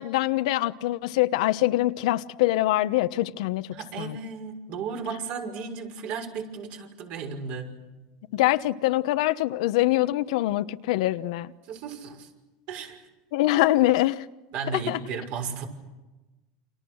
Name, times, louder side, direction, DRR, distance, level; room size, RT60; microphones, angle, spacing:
voice 1, 0.0-3.7 4.0-4.2 8.3-11.5 13.3-14.2 14.7-15.0, left 16 dB, 75° left, 1.0 m, -24 dB
voice 2, 3.7-7.8 11.7-12.3 12.7-13.0 14.5-15.7, right 6 dB, 55° right, 6.1 m, -34 dB
29.0 x 27.0 x 6.4 m
supercardioid pair, 130°, 3 cm